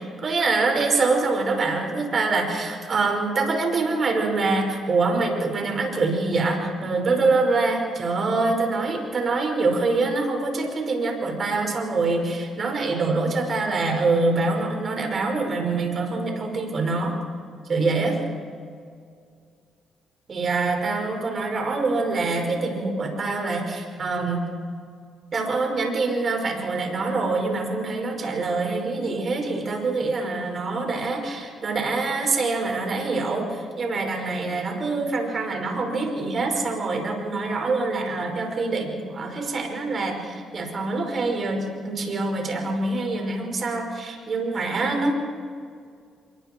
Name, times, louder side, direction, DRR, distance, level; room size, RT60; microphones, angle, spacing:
voice 1, 0.0-17.2 17.7-18.2 20.3-24.4 25.3-45.2, right 3 dB, 45° right, 3 dB, 5.3 m, -25 dB
27.5 x 23.0 x 4.6 m, 2.2 s
cardioid pair, 85°, 0 cm